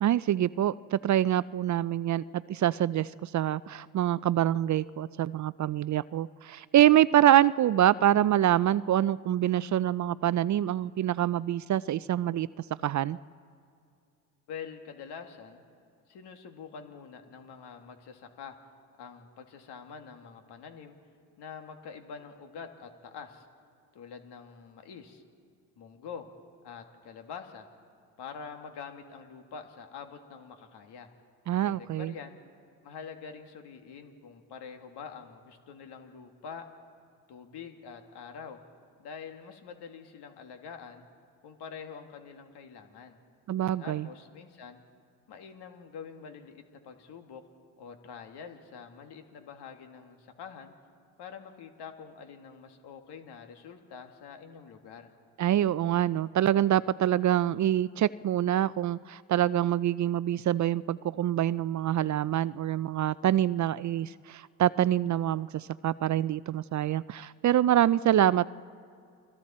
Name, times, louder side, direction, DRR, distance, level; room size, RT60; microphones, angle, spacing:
voice 1, 0.0-12.5 12.8-13.2 31.5-32.1 43.5-44.1 55.4-68.5, right 12 dB, 45° right, 18 dB, 0.5 m, -25 dB
voice 2, 14.5-15.6 16.1-18.6 19.0-21.0 21.4-23.5 23.9-25.2 25.8-26.3 26.6-27.7 28.2-31.1 31.6-32.4 32.8-36.7 37.3-38.6 39.0-41.1 41.4-43.2 43.8-44.8 45.3-47.4 47.8-50.7 51.2-55.1, left 6 dB, 70° left, 5 dB, 2.3 m, -45 dB
29.0 x 21.5 x 4.3 m, 2.4 s
supercardioid pair, 65°, 41 cm